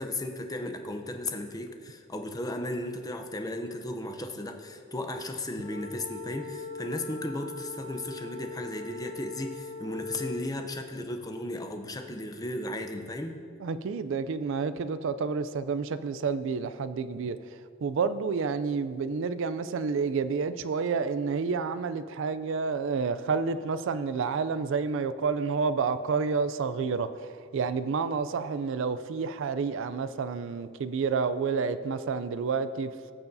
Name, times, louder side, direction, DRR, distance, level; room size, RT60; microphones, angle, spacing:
voice 1, 0.0-13.4, left 1 dB, 20° left, 5 dB, 0.6 m, -35 dB
sound 1, 5.6-10.5, left 3 dB, 45° left, 2.5 m, -41 dB
voice 2, 13.6-17.4 17.8-32.9, right 5 dB, 65° right, 12 dB, 0.4 m, -29 dB
18.0 x 6.9 x 2.7 m, 2.3 s
head